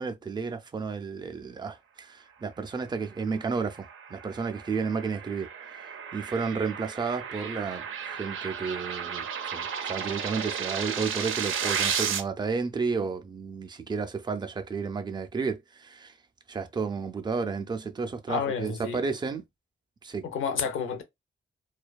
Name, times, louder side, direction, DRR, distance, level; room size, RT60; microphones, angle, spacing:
voice 1, 0.0-5.5 6.1-9.3 9.5-16.1 16.5-19.4 20.0-20.2, right 5 dB, 20° right, 0.3 m, -32 dB
sound 1, 3.3-12.2, right 7 dB, 85° right, 0.5 m, -33 dB
voice 2, 18.3-19.0 20.2-21.0, left 6 dB, 85° left, 0.6 m, -30 dB
2.5 x 2.2 x 2.2 m
wide cardioid pair, 145°, 20 cm